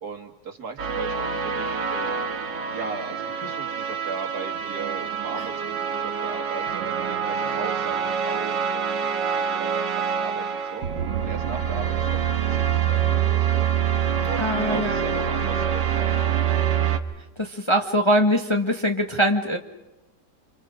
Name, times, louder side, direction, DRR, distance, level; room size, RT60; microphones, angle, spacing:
voice 1, 0.0-2.3 2.7-9.1 9.3-10.9 11.2-13.7 14.2-16.4, right 4 dB, 60° right, 4 dB, 2.5 m, -38 dB
sound 1, 0.8-17.0, right 8 dB, 90° right, 1.9 m, -25 dB
voice 2, 14.4-15.0 17.4-19.6, equal, 20° left, 3 dB, 1.3 m, -22 dB
29.0 x 26.5 x 5.1 m, 0.97 s
omnidirectional pair, 1.9 m